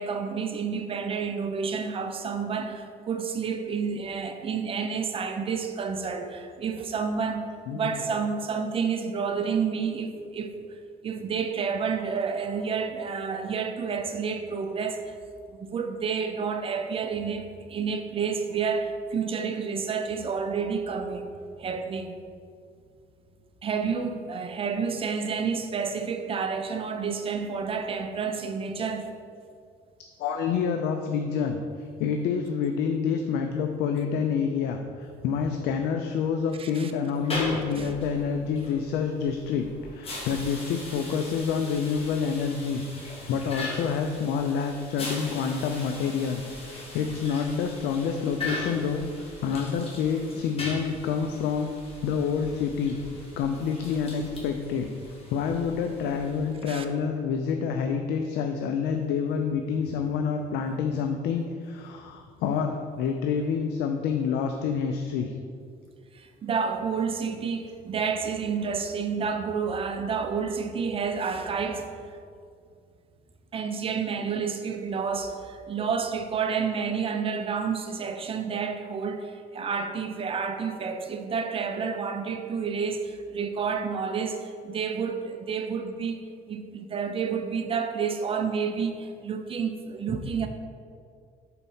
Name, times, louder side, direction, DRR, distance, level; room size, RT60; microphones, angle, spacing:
voice 1, 0.0-10.6 11.0-15.2 15.5-21.3 21.6-22.2 23.6-29.1 36.6-36.9 37.8-37.9 56.7-56.8 66.2-71.9 73.5-86.2 86.5-90.5, right 5 dB, 35° right, 0.5 m, -30 dB
voice 2, 30.2-31.6 32.0-51.7 52.0-54.9 55.3-65.3, left 6 dB, 80° left, 0.4 m, -28 dB
sound 1, 37.1-56.7, left 2 dB, 35° left, 1.4 m, -39 dB
4.3 x 4.2 x 5.5 m
cardioid pair, 110°, 17 cm